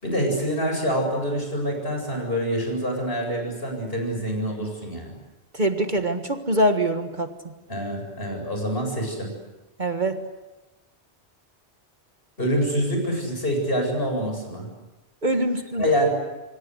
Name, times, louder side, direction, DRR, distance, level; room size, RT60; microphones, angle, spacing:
voice 1, 0.0-5.2 7.7-9.3 12.4-14.7 15.8-16.1, equal, 60° left, 2 dB, 8.2 m, -26 dB
voice 2, 5.5-7.3 9.8-10.2 15.2-15.9, right 1 dB, 45° right, 6 dB, 1.7 m, -23 dB
26.5 x 26.0 x 8.1 m, 1.1 s
omnidirectional pair, 1.1 m